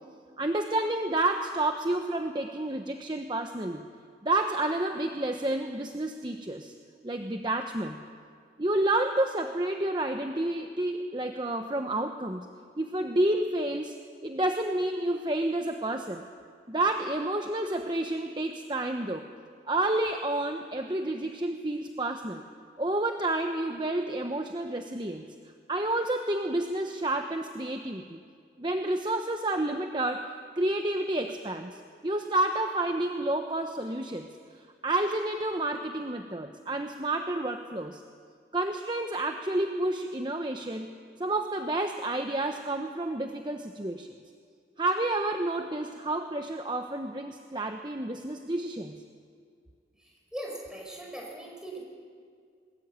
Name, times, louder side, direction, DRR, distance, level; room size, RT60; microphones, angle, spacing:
voice 1, 0.4-3.8 4.2-6.7 7.0-8.0 8.6-12.5 12.8-14.0 14.2-16.2 16.7-19.3 19.7-22.4 22.8-25.3 25.7-28.2 28.6-31.8 32.0-34.3 34.8-38.0 38.5-40.9 41.2-44.1 44.8-49.0, right 1 dB, 25° right, 5 dB, 1.0 m, -30 dB
voice 2, 50.0-51.8, right 1 dB, 5° right, -2 dB, 5.5 m, -40 dB
22.5 x 21.0 x 8.9 m, 2.2 s
head